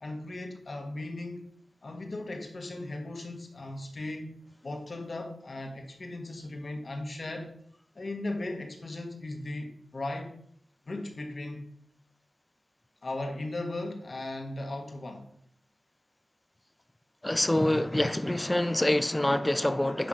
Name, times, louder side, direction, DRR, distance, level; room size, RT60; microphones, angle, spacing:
voice 1, 0.0-1.4 1.8-7.6 8.0-10.3 10.9-11.6 13.0-15.3, left 2 dB, 50° left, 1.9 m, -37 dB
voice 2, 17.2-20.1, left 1 dB, 15° left, 0.6 m, -26 dB
10.0 x 3.8 x 6.4 m
wide cardioid pair, 75°, 0 cm